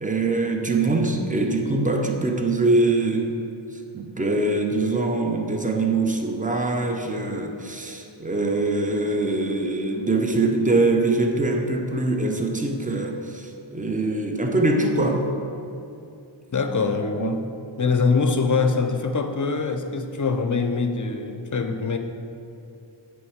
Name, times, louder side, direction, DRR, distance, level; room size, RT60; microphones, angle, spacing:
voice 1, 0.0-3.3 3.9-15.3 17.2-17.4, right 2 dB, 15° right, 2 dB, 0.7 m, -23 dB
voice 2, 16.5-17.4 17.8-22.0, left 4 dB, 40° left, 6 dB, 0.5 m, -23 dB
7.7 x 3.3 x 5.7 m, 2.7 s
wide cardioid pair, 40°, 49 cm